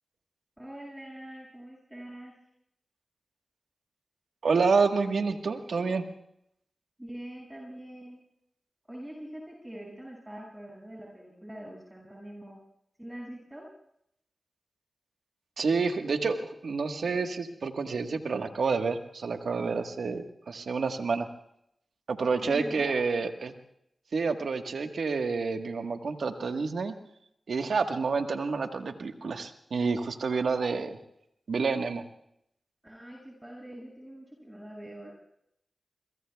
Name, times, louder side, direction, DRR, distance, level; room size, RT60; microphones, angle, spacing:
voice 1, 0.6-2.3 7.0-8.2 8.9-12.6 13.0-13.7 22.4-23.0 32.8-35.1, right 1 dB, 15° right, -2 dB, 6.4 m, -43 dB
voice 2, 4.4-6.0 15.6-21.3 22.1-23.5 24.1-26.9 27.5-31.0 31.5-32.0, right 4 dB, 85° right, 5 dB, 1.4 m, -29 dB
26.0 x 23.0 x 2.3 m, 0.74 s
cardioid pair, 40°, 0 cm